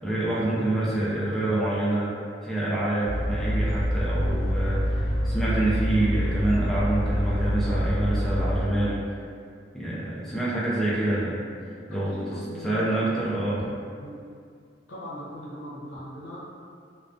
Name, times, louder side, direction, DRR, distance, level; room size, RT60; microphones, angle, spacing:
voice 1, 0.0-2.1 2.4-9.0 9.7-11.4 11.9-12.2 12.6-13.8, right 1 dB, ahead, -8 dB, 0.4 m, -26 dB
sound 1, 3.0-8.6, equal, 60° right, 1.0 m, -26 dB
voice 2, 11.9-13.2 14.0-14.2 14.9-16.4, equal, 70° left, -7 dB, 0.7 m, -39 dB
2.3 x 2.2 x 2.4 m, 2.2 s
head